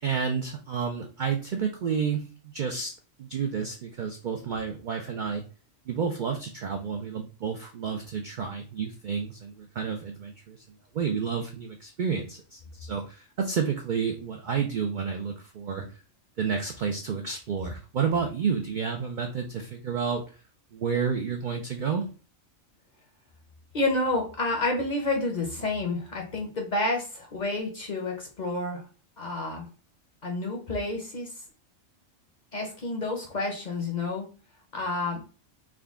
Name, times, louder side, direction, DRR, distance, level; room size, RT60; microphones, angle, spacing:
voice 1, 0.0-2.9 3.2-5.4 5.9-10.6 10.9-15.8 16.4-20.2 20.7-22.1, right 6 dB, 75° right, 3 dB, 0.4 m, -30 dB
voice 2, 23.7-28.8 29.2-29.7 30.2-31.4 32.5-34.3 34.7-35.2, left 2 dB, 45° left, 1 dB, 0.6 m, -29 dB
3.7 x 2.2 x 3.5 m, 0.37 s
omnidirectional pair, 1.4 m